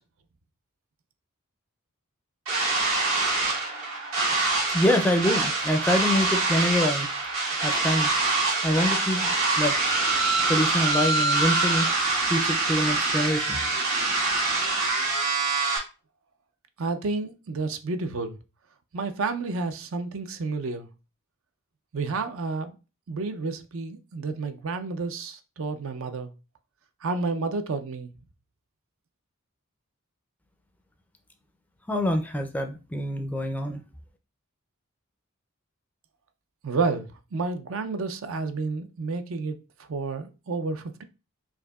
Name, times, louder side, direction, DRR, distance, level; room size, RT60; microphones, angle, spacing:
sound 1, 2.5-15.8, right 3 dB, 85° right, 1.9 m, -25 dB
voice 1, 4.7-7.1 7.6-8.1 8.6-9.8 10.4-11.9 12.3-13.6 31.9-33.8, left 1 dB, 5° left, 0.4 m, -25 dB
voice 2, 16.8-18.4 18.9-20.9 21.9-22.7 23.1-26.3 27.0-28.1 36.6-39.6 39.9-41.0, right 3 dB, 65° right, 0.5 m, -30 dB
4.7 x 2.7 x 2.3 m
head